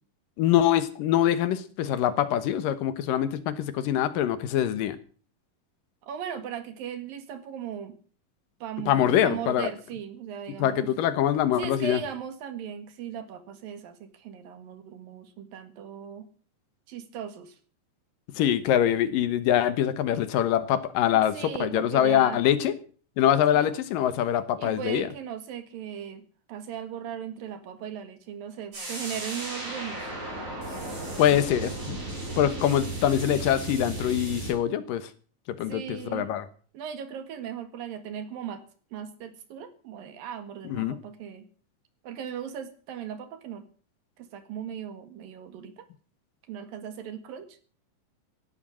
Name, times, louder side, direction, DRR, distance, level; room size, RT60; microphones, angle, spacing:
voice 1, 0.4-5.0 8.9-9.7 10.6-12.0 18.4-22.7 23.2-25.1 31.2-32.0 32.4-35.1 35.5-36.5 40.6-41.0, left 11 dB, 80° left, 13 dB, 2.9 m, -24 dB
voice 2, 6.0-8.0 8.6-10.9 11.6-16.3 16.9-17.6 21.3-22.4 23.5-23.7 24.6-30.1 31.1-31.6 32.6-32.8 35.7-36.3 36.7-38.6 38.9-41.5 42.0-43.7 44.2-45.9 46.5-47.6, right 8 dB, 85° right, 10 dB, 3.6 m, -38 dB
sound 1, 28.7-34.5, right 2 dB, 60° right, 9.2 m, -35 dB
16.0 x 11.5 x 6.3 m, 0.42 s
omnidirectional pair, 3.9 m